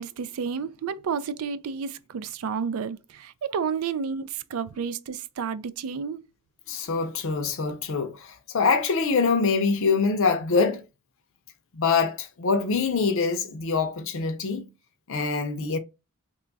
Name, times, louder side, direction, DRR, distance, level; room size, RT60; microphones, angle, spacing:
voice 1, 0.0-6.2, right 6 dB, 80° right, 0.4 m, -31 dB
voice 2, 6.7-10.8 11.7-14.7 15.1-15.8, left 4 dB, 60° left, 0.5 m, -24 dB
3.0 x 2.2 x 3.9 m
head